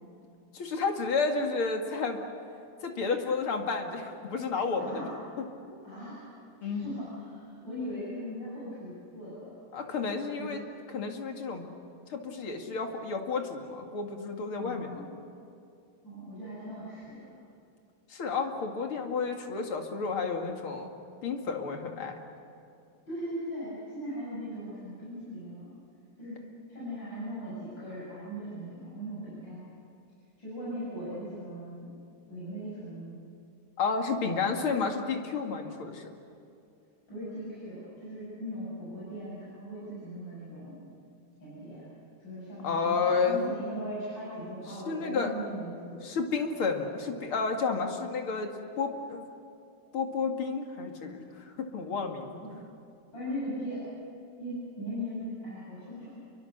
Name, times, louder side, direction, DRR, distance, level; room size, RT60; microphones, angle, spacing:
voice 1, 0.5-2.2 2.8-5.0 5.4-5.5 5.7-5.8 6.6-6.9 9.7-10.6 10.9-11.6 12.1-15.1 18.1-20.9 21.2-22.2 33.8-36.1 42.6-43.4 44.9-45.3 46.0-49.3 49.9-52.4, left 4 dB, 80° left, 3 dB, 3.0 m, -31 dB
voice 2, 4.8-5.1 5.8-6.3 6.6-9.6 10.4-10.6 14.6-15.0 16.0-17.4 23.1-25.7 26.2-26.4 26.7-29.7 30.4-31.9 32.3-33.2 34.3-34.5 37.1-40.8 41.4-41.8 42.2-46.1 52.4-52.5 53.1-53.8 54.4-56.1, equal, 60° left, -10 dB, 8.6 m, -39 dB
29.0 x 23.5 x 6.6 m, 2.5 s
omnidirectional pair, 2.3 m